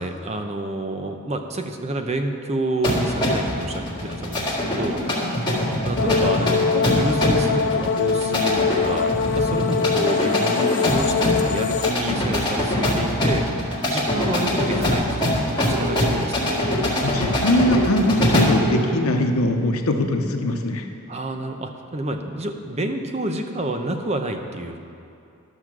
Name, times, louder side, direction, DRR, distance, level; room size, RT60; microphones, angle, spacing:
voice 1, 0.0-5.0 5.5-13.5 13.9-15.3 15.6-16.6 21.1-24.8, right 1 dB, 30° right, 5 dB, 0.7 m, -29 dB
sound 1, 2.8-18.7, left 1 dB, 20° left, 1.9 m, -23 dB
sound 2, 6.0-11.9, left 5 dB, 50° left, 0.3 m, -23 dB
sound 3, 14.4-14.9 15.7-16.2 16.4-16.9 17.6-18.1 18.6-19.1, right 3 dB, 80° right, 0.7 m, -30 dB
voice 2, 17.0-20.8, left 1 dB, 85° left, 4 dB, 0.9 m, -21 dB
12.0 x 6.4 x 6.1 m, 2.5 s
head